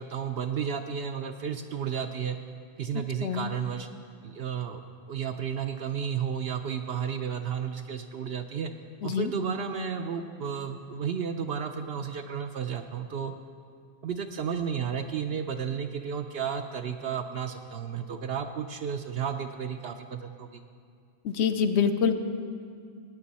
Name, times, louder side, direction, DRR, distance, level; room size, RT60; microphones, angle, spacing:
voice 1, 0.0-2.4 2.8-3.9 4.2-4.8 5.1-8.7 9.0-13.3 14.0-20.6, right 7 dB, 65° right, 7 dB, 0.7 m, -32 dB
voice 2, 3.2-3.5 9.0-9.3 21.2-22.1, left 7 dB, 65° left, 9 dB, 0.9 m, -25 dB
16.5 x 9.6 x 4.2 m, 2.3 s
omnidirectional pair, 1.4 m